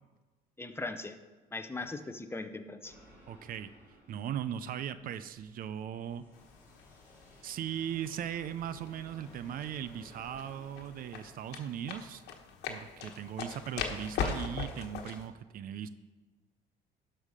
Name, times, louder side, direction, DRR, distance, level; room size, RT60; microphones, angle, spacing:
voice 1, 0.6-1.2 1.5-2.9, left 3 dB, 15° left, 8 dB, 0.7 m, -39 dB
sound 1, 2.8-11.7, equal, 15° right, 3.2 m, -58 dB
voice 2, 3.3-6.2 7.4-12.2 12.7-15.9, right 9 dB, 55° right, 14 dB, 0.5 m, -38 dB
sound 2, 6.3-15.3, left 6 dB, 80° left, 1.2 m, -41 dB
12.0 x 5.5 x 4.9 m, 1.2 s
cardioid pair, 110°, 17 cm